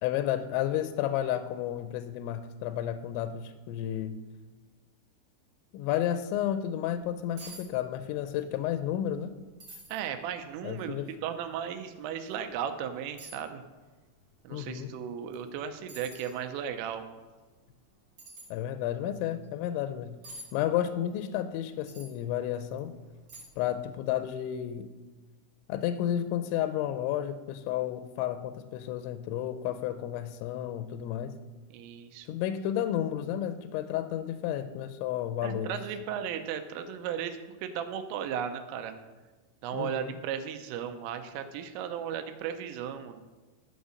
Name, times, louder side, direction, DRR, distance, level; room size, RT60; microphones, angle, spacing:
voice 1, 0.0-4.2 5.7-9.3 10.6-11.1 14.5-14.9 18.5-20.2 20.5-22.9 23.6-24.9 25.7-31.4 32.3-35.8 39.7-40.2, left 11 dB, 85° left, 11 dB, 2.7 m, -32 dB
sound 1, 7.4-7.7 7.9-8.5 8.9-9.0 9.6-10.0 10.7-10.8 12.3-12.4 13.2-13.5 15.3-15.5 15.9-16.4 18.2-18.5 20.2-20.5 21.9-22.1 22.7-22.8 23.3-23.7 24.0-24.1, right 1 dB, 40° right, 2.1 m, -47 dB
voice 2, 9.9-13.6 14.4-17.1 31.7-32.3 35.4-39.0 39.6-43.2, right 8 dB, 90° right, 7 dB, 3.3 m, -36 dB
12.5 x 5.4 x 6.4 m, 1.3 s
omnidirectional pair, 5.8 m